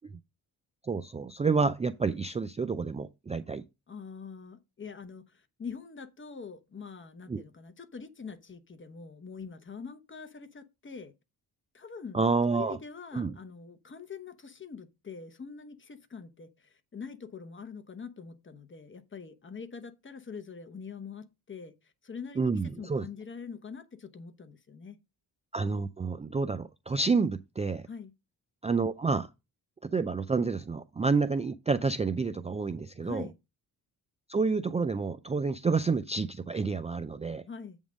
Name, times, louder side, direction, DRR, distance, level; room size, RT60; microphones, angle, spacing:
voice 1, 0.8-3.6 7.3-7.4 12.1-12.8 13.1-13.3 22.4-23.1 25.5-27.9 28.6-29.3 29.8-33.3 34.3-37.4, right 4 dB, 20° right, 0.3 m, -29 dB
voice 2, 3.9-11.1 11.7-25.0 27.9-28.1 33.0-33.4 37.5-37.8, left 5 dB, 30° left, 1.0 m, -44 dB
8.0 x 3.6 x 6.3 m
cardioid pair, 105°, 39 cm